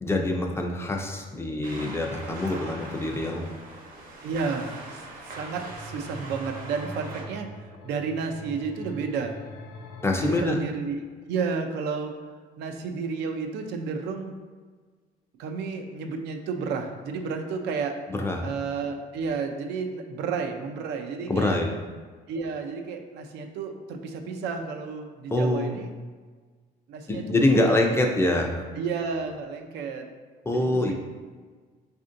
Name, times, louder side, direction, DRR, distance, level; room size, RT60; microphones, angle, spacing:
voice 1, 0.0-3.4 10.0-10.6 18.1-18.4 21.3-21.7 25.3-25.7 27.1-28.6 30.5-30.9, left 1 dB, 15° left, 2 dB, 0.4 m, -25 dB
sound 1, 1.6-7.2, right 2 dB, 55° right, 0.8 m, -41 dB
voice 2, 4.2-7.5 7.8-9.3 10.2-11.0 11.3-12.1 12.6-14.3 15.4-18.0 18.4-21.6 22.3-25.9 26.9-27.9 28.8-30.1 30.5-30.9, right 5 dB, 80° right, 5 dB, 0.4 m, -31 dB
sound 2, 5.2-10.4, equal, 70° left, 0.6 m, -43 dB
4.2 x 2.6 x 2.5 m, 1.5 s
cardioid pair, 110°, 17 cm